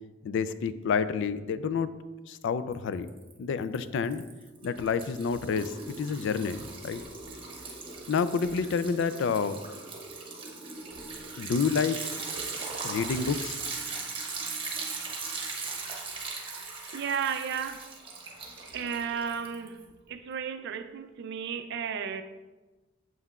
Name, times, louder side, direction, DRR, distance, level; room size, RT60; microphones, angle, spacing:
voice 1, 0.2-1.9 2.3-3.1 3.4-4.2 4.6-7.0 8.1-9.6 11.4-12.1 12.8-13.6, left 5 dB, 65° left, 0.3 m, -29 dB
Liquid, 2.7-3.3 3.6-19.8, right 4 dB, 25° right, 1.0 m, -39 dB
voice 2, 16.9-17.8 18.7-19.8 20.1-22.2, right 7 dB, 60° right, 0.4 m, -33 dB
7.6 x 5.5 x 2.4 m
head